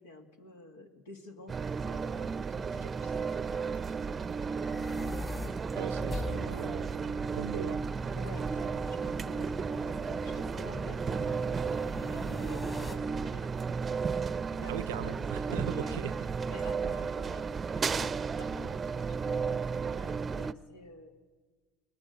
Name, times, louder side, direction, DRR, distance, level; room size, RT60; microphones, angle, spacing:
voice 1, 0.0-4.3 5.8-6.8 8.2-13.8 14.1-16.1 16.4-21.1, left 3 dB, 90° left, 2.0 m, -50 dB
sound 1, 1.5-20.5, right 5 dB, 30° right, 0.6 m, -33 dB
sound 2, 4.5-12.9, left 3 dB, 30° left, 3.9 m, -44 dB
voice 2, 5.7-7.9 14.7-16.1, right 13 dB, 85° right, 0.6 m, -39 dB
20.0 x 19.0 x 7.9 m
hypercardioid pair, 75°, 0 cm